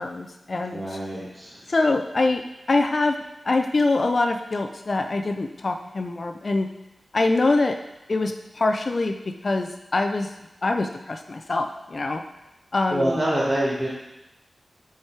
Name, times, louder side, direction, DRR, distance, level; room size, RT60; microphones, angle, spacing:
voice 1, 0.0-1.0 1.7-2.4 2.7-3.2 3.4-6.7 7.1-7.8 8.1-9.2 9.4-10.3 10.6-12.2 12.7-13.2, left 2 dB, 45° left, 6 dB, 0.4 m, -24 dB
voice 2, 0.7-1.6 12.9-13.9, right 1 dB, 15° right, -8 dB, 1.4 m, -25 dB
7.3 x 4.7 x 4.5 m, 0.95 s
wide cardioid pair, 110°, 0 cm